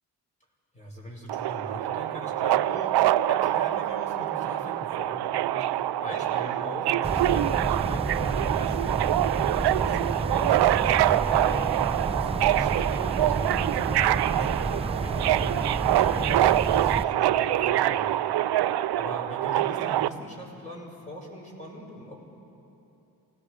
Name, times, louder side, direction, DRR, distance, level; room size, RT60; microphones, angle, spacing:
voice 1, 0.7-9.1 9.5-18.3 19.0-22.2, equal, 15° left, -2 dB, 6.9 m, -40 dB
Subway metro underground, 1.3-20.1, right 13 dB, 70° right, 0.6 m, -25 dB
sound 1, 7.0-17.0, right 3 dB, 15° right, 0.7 m, -31 dB
28.5 x 19.5 x 5.1 m, 2.9 s
cardioid pair, 70°, 40 cm